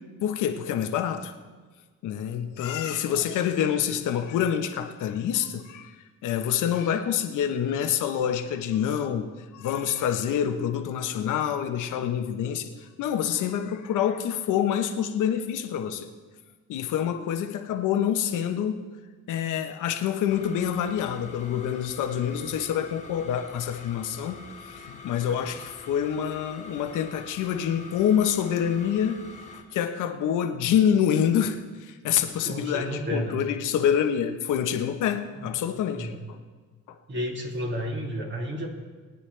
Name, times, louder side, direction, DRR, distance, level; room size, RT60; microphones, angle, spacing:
voice 1, 0.2-1.3 2.0-5.9 6.2-16.1 16.7-18.8 19.3-29.2 29.7-36.1 36.9-37.0, left 9 dB, 85° left, 7 dB, 1.1 m, -27 dB
sound 1, 20.3-29.6, left 4 dB, 25° left, 1.8 m, -45 dB
voice 2, 32.4-33.4 35.3-35.4 35.9-36.2 37.1-38.7, equal, 40° right, 0 dB, 2.7 m, -31 dB
22.0 x 9.4 x 3.4 m, 1.4 s
cardioid pair, 90°, 30 cm